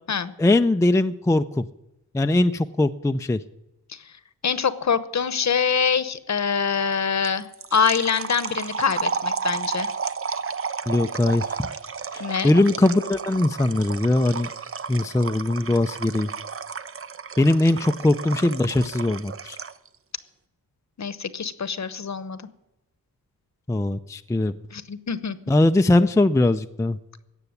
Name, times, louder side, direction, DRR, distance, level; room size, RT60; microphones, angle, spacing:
voice 1, 0.4-1.7 2.1-3.4 10.9-11.4 12.1-14.5 14.9-16.3 17.4-19.6 23.7-24.5 25.5-27.0, left 2 dB, 10° left, 8 dB, 0.5 m, -21 dB
voice 2, 4.4-9.9 12.2-12.5 21.0-22.4 24.7-25.4, left 6 dB, 50° left, 14 dB, 1.0 m, -25 dB
sound 1, 7.2-19.9, right 5 dB, 35° right, 0.7 m, -32 dB
17.0 x 6.9 x 9.6 m, 0.93 s
wide cardioid pair, 105°, 37 cm